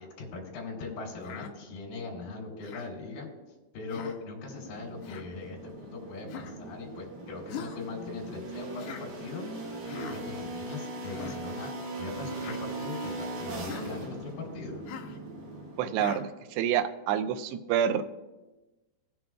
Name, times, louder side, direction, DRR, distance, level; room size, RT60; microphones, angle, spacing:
voice 1, 0.0-3.3 3.7-9.5 10.1-11.7 12.0-14.8, left 3 dB, 60° left, -3 dB, 3.8 m, -40 dB
Human voice, 1.2-1.5 2.6-2.9 3.9-4.2 5.0-5.3 6.3-6.6 7.5-7.8 8.8-9.1 9.9-10.2 11.0-11.4 12.3-12.6 13.6-13.9 14.9-15.2 16.0-16.2, left 7 dB, 80° left, 2.7 m, -41 dB
sound 1, 4.4-16.2, right 2 dB, 55° right, 2.3 m, -40 dB
voice 2, 15.8-18.0, right 9 dB, 85° right, 7 dB, 2.6 m, -28 dB
17.5 x 7.7 x 2.3 m, 1.1 s
omnidirectional pair, 4.8 m